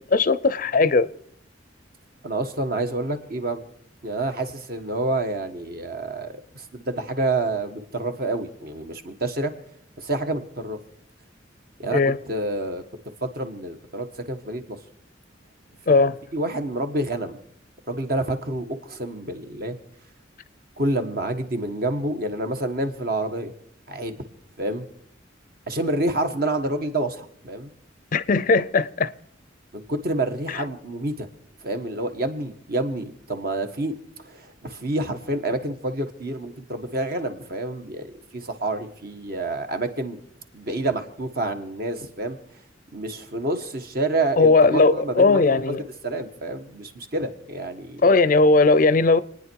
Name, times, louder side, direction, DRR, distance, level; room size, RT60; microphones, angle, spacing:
voice 1, 0.1-1.1 11.9-12.2 15.9-16.2 28.1-29.1 44.4-45.8 48.0-49.2, left 3 dB, 45° left, 0.5 m, -18 dB
voice 2, 2.2-3.6 4.0-9.5 10.0-10.8 11.8-12.8 13.2-14.8 16.0-17.4 17.9-19.8 20.8-23.5 23.9-24.2 24.6-24.9 25.7-27.7 29.7-31.3 31.6-33.9 34.2-38.1 38.3-40.2 40.5-42.4 42.9-45.8 46.0-48.0, right 2 dB, 50° right, 1.4 m, -28 dB
28.5 x 9.6 x 4.6 m
head